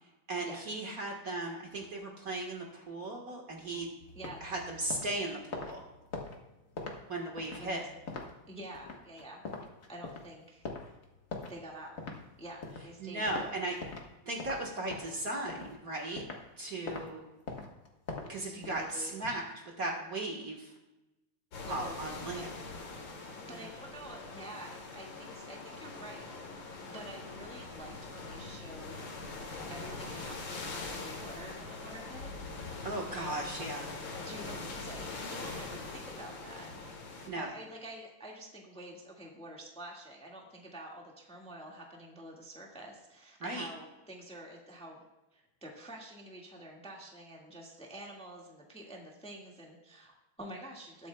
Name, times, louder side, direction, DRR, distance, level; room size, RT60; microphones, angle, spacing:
voice 1, 0.3-3.9 4.4-5.8 7.1-7.8 13.0-13.8 14.3-16.2 16.6-17.2 18.3-19.4 19.8-20.7 21.7-22.5 23.5-23.6 32.8-33.9 37.3-37.5 43.4-43.7, right 2 dB, 45° right, 0 dB, 1.8 m, -37 dB
sound 1, 4.0-14.1 14.4-16.5 16.9-17.1 17.5-19.3, left 3 dB, 40° left, 1.6 m, -43 dB
voice 2, 4.1-4.5 7.6-7.9 8.5-9.4 9.9-10.6 11.5-12.0 12.4-13.3 18.5-19.2 21.6-22.4 23.5-26.3 26.9-29.4 29.7-32.3 32.5-32.7 33.1-33.4 34.2-36.7 37.3-45.0 45.3-51.1, right 1 dB, 5° left, -1 dB, 1.5 m, -48 dB
sound 2, 21.5-37.3, left 3 dB, 65° left, 2.3 m, -43 dB
20.5 x 8.4 x 2.3 m, 1.0 s
omnidirectional pair, 2.4 m